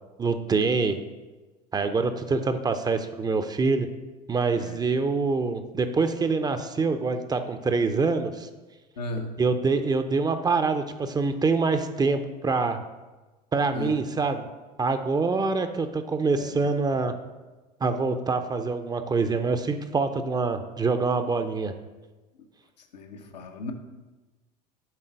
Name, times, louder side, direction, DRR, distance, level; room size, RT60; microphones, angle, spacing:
voice 1, 0.2-1.0 1.7-3.9 4.3-8.5 9.4-12.8 13.5-14.4 14.8-17.1 17.8-21.7, right 4 dB, 20° right, 8 dB, 0.5 m, -25 dB
voice 2, 9.0-9.3 13.7-14.0 16.4-16.6 22.8-23.7, left 2 dB, 80° left, 3 dB, 0.9 m, -36 dB
7.4 x 3.9 x 5.1 m, 1.2 s
hypercardioid pair, 75°, 21 cm